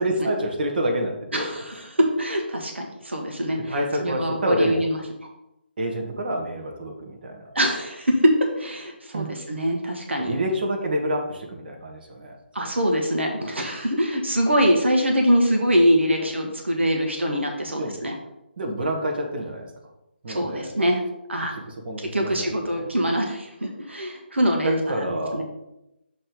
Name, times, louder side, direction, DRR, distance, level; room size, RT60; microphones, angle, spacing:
voice 1, 0.0-1.5 3.7-4.8 5.8-7.5 9.1-9.3 10.2-12.4 16.2-16.3 17.8-18.0 18.6-19.7 20.2-20.7 21.8-22.9 24.6-25.4, equal, 55° right, 2 dB, 1.4 m, -27 dB
voice 2, 1.3-5.0 7.5-8.3 8.6-10.3 12.5-18.1 20.3-21.0 21.3-21.5 22.1-25.4, equal, 85° right, 2 dB, 1.2 m, -23 dB
6.7 x 3.2 x 5.2 m, 0.88 s
figure-of-eight pair, 150°, 6 cm